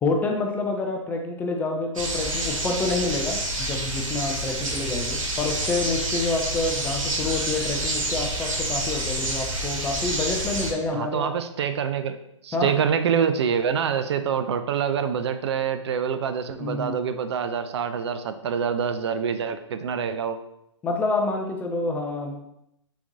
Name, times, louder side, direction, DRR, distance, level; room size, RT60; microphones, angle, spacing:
voice 1, 0.0-11.3 12.5-12.7 16.6-17.0 20.8-22.3, left 3 dB, 10° left, 3 dB, 0.3 m, -28 dB
sound 1, 2.0-10.7, right 1 dB, 85° right, 1.0 m, -28 dB
voice 2, 10.9-12.2 12.4-20.4, right 7 dB, 55° right, 9 dB, 0.4 m, -26 dB
4.3 x 3.9 x 2.6 m, 0.79 s
hypercardioid pair, 125°, 17 cm